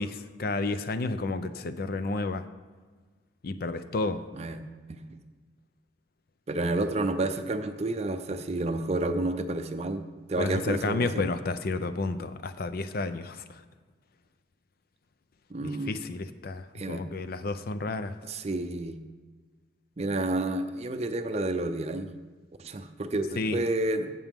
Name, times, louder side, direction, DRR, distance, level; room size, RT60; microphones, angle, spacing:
voice 1, 0.0-2.5 3.4-4.3 10.4-13.6 15.6-18.2 23.4-23.6, left 3 dB, 50° left, 11 dB, 0.5 m, -31 dB
voice 2, 4.9-5.2 6.5-10.0 10.3-11.2 15.5-15.9 16.7-17.0 18.3-19.0 20.0-22.1 22.6-24.1, right 2 dB, 35° right, 8 dB, 0.5 m, -30 dB
16.5 x 6.0 x 3.6 m, 1.4 s
head